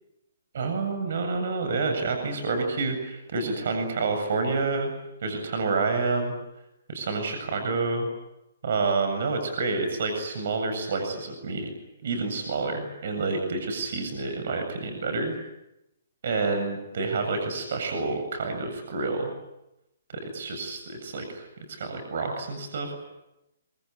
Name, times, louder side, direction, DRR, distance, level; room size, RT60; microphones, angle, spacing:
voice 1, 0.5-4.9 5.2-6.3 6.9-8.1 8.6-11.7 12.0-15.4 16.2-19.3 20.1-23.0, right 3 dB, 60° right, 6 dB, 7.8 m, -28 dB
25.5 x 23.0 x 9.7 m, 0.89 s
hypercardioid pair, 155°, 0 cm